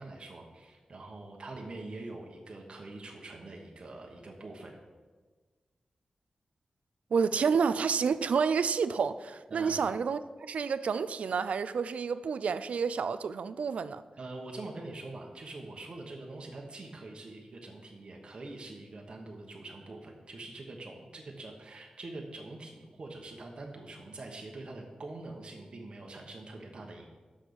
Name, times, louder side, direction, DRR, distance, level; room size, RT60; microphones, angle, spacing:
voice 1, 0.0-4.8 9.5-9.9 14.2-27.1, right 2 dB, 45° right, 1.1 m, -44 dB
voice 2, 7.1-14.0, right 6 dB, 80° right, 0.4 m, -29 dB
6.3 x 6.0 x 6.8 m
wide cardioid pair, 135°, 2 cm